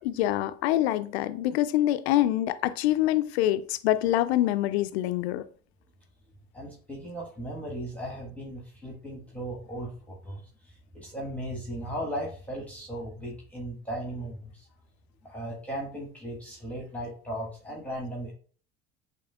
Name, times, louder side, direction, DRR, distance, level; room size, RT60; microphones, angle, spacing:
voice 1, 0.0-5.4, left 14 dB, 80° left, 0.5 m, -25 dB
voice 2, 6.5-14.7 15.2-18.3, right 1 dB, 5° left, 1.5 m, -37 dB
6.9 x 3.0 x 2.3 m
hypercardioid pair, 75°, 32 cm